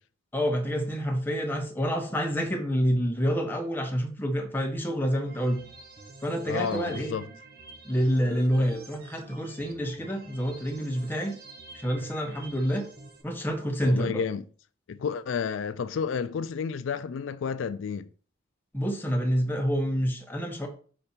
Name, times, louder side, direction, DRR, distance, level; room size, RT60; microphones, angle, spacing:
voice 1, 0.3-5.6 6.2-7.1 7.8-11.3 11.7-12.8 13.2-14.2 18.7-20.7, equal, 10° left, 1.0 m, -28 dB
sound 1, 5.2-13.2, right 2 dB, 55° right, 0.9 m, -48 dB
voice 2, 6.5-7.2 13.8-14.4 14.9-18.1, left 6 dB, 80° left, 0.4 m, -31 dB
5.2 x 4.2 x 4.4 m
head